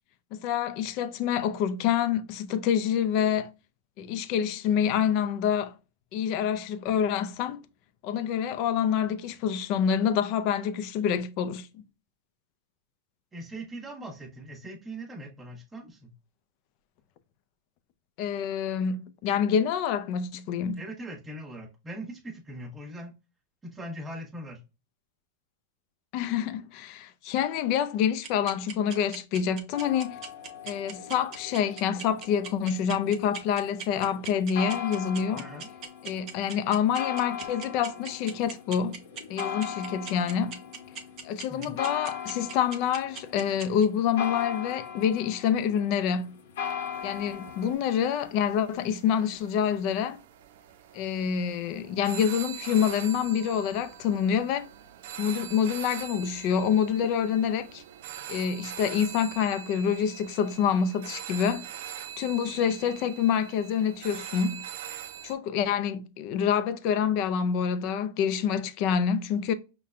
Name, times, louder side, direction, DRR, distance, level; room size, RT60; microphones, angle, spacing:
voice 1, 0.3-3.5 4.0-5.7 6.1-7.7 8.0-11.8 18.2-20.8 26.1-30.2 30.6-35.5 36.0-39.0 39.3-40.6 41.2-46.4 47.0-50.2 50.9-54.7 55.2-57.8 58.3-61.7 62.2-64.6 65.2-69.5, left 8 dB, 40° left, 0.4 m, -27 dB
voice 2, 13.3-16.1 20.8-23.1 23.6-24.6 35.4-35.7 41.5-41.8, right 1 dB, 10° right, 1.2 m, -40 dB
sound 1, 28.2-43.8, right 6 dB, 30° right, 0.8 m, -39 dB
sound 2, 29.7-47.7, left 8 dB, 70° left, 0.8 m, -39 dB
sound 3, 46.9-65.3, right 10 dB, 60° right, 0.4 m, -43 dB
5.7 x 2.2 x 2.4 m
supercardioid pair, 155°, 0 cm